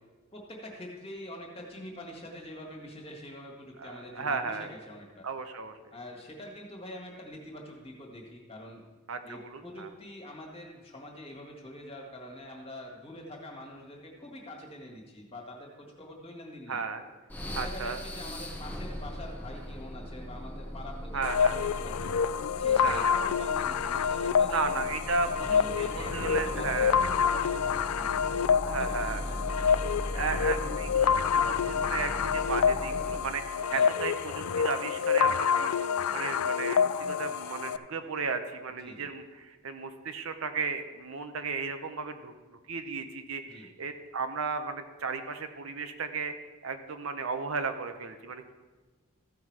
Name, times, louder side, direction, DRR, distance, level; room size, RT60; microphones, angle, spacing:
voice 1, 0.3-5.3 5.9-8.8 9.2-16.8 17.4-22.1 22.6-24.7 25.4-29.6 33.7-33.8 38.8-39.1 43.4-43.7, left 1 dB, 25° left, 0 dB, 1.7 m, -45 dB
voice 2, 3.8-4.7 5.2-5.8 9.1-9.9 16.7-17.0 17.6-18.0 21.1-21.6 22.7-23.2 24.5-27.0 28.2-28.3 28.6-46.3 46.6-48.5, right 4 dB, 70° right, 8 dB, 0.7 m, -35 dB
sound 1, 17.3-33.4, left 1 dB, 10° left, 0.8 m, -39 dB
sound 2, 21.2-37.8, left 7 dB, 90° left, 0.4 m, -27 dB
14.5 x 5.9 x 4.7 m, 1.3 s
head